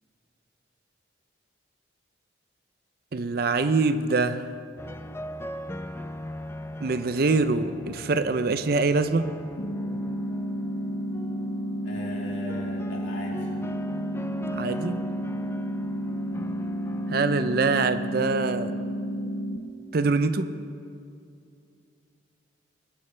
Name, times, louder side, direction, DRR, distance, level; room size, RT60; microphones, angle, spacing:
voice 1, 3.1-4.5 6.8-9.3 14.5-15.0 17.1-18.7 19.9-20.5, right 3 dB, 50° right, 11 dB, 0.5 m, -24 dB
sound 1, 4.8-17.6, equal, 15° left, 0.3 m, -41 dB
sound 2, 9.6-19.6, equal, 60° left, 0.9 m, -31 dB
voice 2, 11.8-13.5, left 1 dB, 80° left, -4 dB, 3.1 m, -39 dB
21.0 x 10.5 x 3.3 m, 2.4 s
head